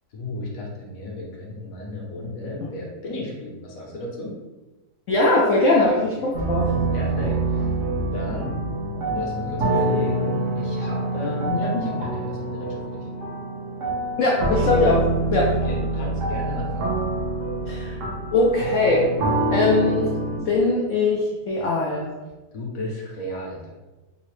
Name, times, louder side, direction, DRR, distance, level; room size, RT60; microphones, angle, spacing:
voice 1, 0.1-4.3 6.9-7.7 8.1-8.6 9.1-13.1 15.5-16.9 22.5-23.7, left 2 dB, 60° left, -2 dB, 1.0 m, -34 dB
voice 2, 5.1-6.7 11.5-11.6 14.2-15.5 17.7-18.0 18.3-19.1 19.5-20.1 20.4-22.1, left 2 dB, 85° left, -3 dB, 0.6 m, -21 dB
sound 1, 6.3-20.4, right 2 dB, 60° right, 0.9 m, -26 dB
3.7 x 2.0 x 3.0 m, 1.1 s
omnidirectional pair, 1.9 m